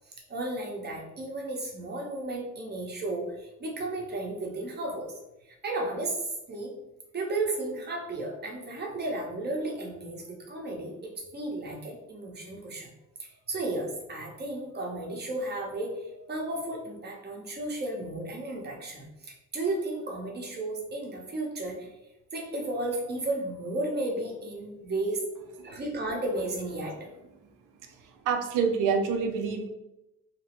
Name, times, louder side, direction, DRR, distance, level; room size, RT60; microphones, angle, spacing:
voice 1, 0.3-5.1 5.4-6.2 6.5-6.7 7.1-12.9 13.2-21.9 22.3-25.2 25.6-27.1, right 2 dB, 35° right, 0 dB, 0.8 m, -34 dB
voice 2, 27.8-29.7, right 5 dB, 90° right, 6 dB, 0.5 m, -28 dB
2.9 x 2.0 x 2.9 m, 0.93 s
cardioid pair, 90°, 30 cm